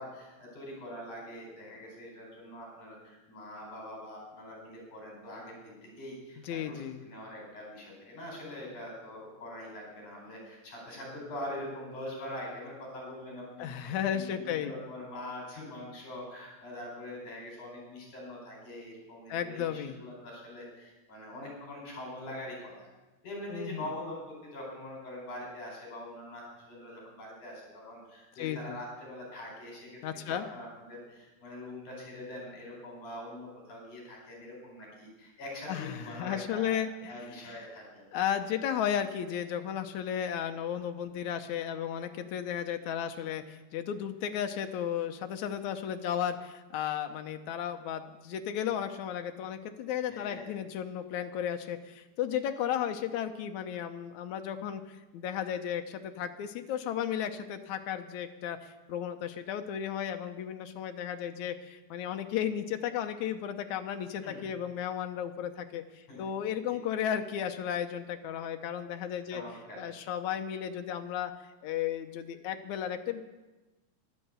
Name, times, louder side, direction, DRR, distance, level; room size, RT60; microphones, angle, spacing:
voice 1, 0.0-22.9 23.2-30.0 30.3-36.7 37.1-38.0 50.1-50.5 64.2-64.4 66.1-67.1 69.3-69.8, left 1 dB, 55° left, -1 dB, 5.7 m, -43 dB
voice 2, 6.4-7.0 13.6-14.7 19.3-20.0 23.5-23.9 28.4-28.8 30.0-30.4 35.7-37.6 38.1-69.4 69.8-73.2, left 9 dB, 75° left, 7 dB, 1.8 m, -34 dB
12.0 x 11.5 x 8.1 m, 1.1 s
omnidirectional pair, 4.2 m